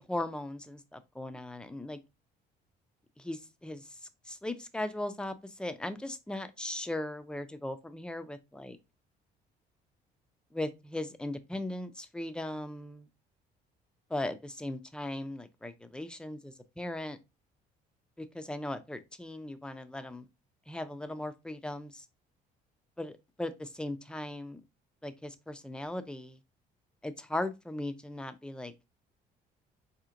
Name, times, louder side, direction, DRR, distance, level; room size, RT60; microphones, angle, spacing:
voice 1, 0.0-2.0 3.2-3.8 4.3-5.3 5.6-8.8 10.5-13.0 14.1-17.2 18.2-20.2 20.7-22.0 23.0-24.6 25.0-26.4 27.0-28.7, left 1 dB, 5° left, 0.4 m, -38 dB
4.2 x 2.9 x 2.4 m
cardioid pair, 110°, 17 cm